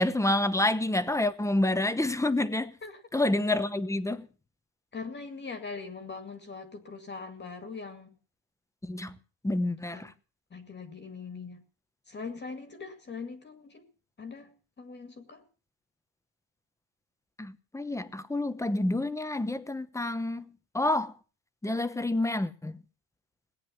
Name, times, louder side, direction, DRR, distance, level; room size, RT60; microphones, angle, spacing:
voice 1, 0.0-2.8 3.1-4.3 8.8-9.2 9.4-10.1 17.4-20.5 20.7-21.1 21.6-22.8, left 1 dB, 5° left, 0.9 m, -28 dB
voice 2, 4.9-8.1 9.9-10.1 10.5-11.6 12.1-13.9 14.2-15.4, left 4 dB, 20° left, 2.1 m, -41 dB
18.0 x 9.8 x 7.3 m
cardioid pair, 150°, 47 cm